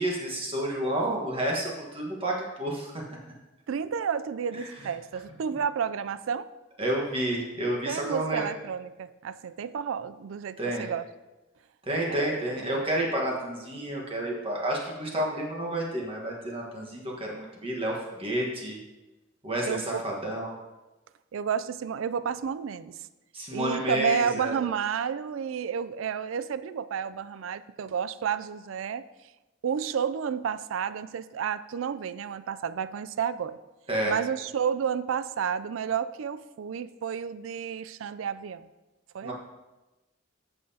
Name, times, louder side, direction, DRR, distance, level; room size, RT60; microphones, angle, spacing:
voice 1, 0.0-3.2 4.5-4.7 6.8-8.5 10.6-10.8 11.9-18.8 19.4-20.5 23.3-24.6 33.9-34.1 39.2-39.3, right 1 dB, 30° right, -2 dB, 1.4 m, -30 dB
voice 2, 3.7-6.5 7.9-11.1 12.1-12.4 19.7-20.0 21.3-23.0 23.5-29.0 29.6-33.6 34.1-38.7 39.1-39.3, right 7 dB, 75° right, 14 dB, 0.4 m, -31 dB
15.0 x 5.6 x 2.8 m, 1.1 s
head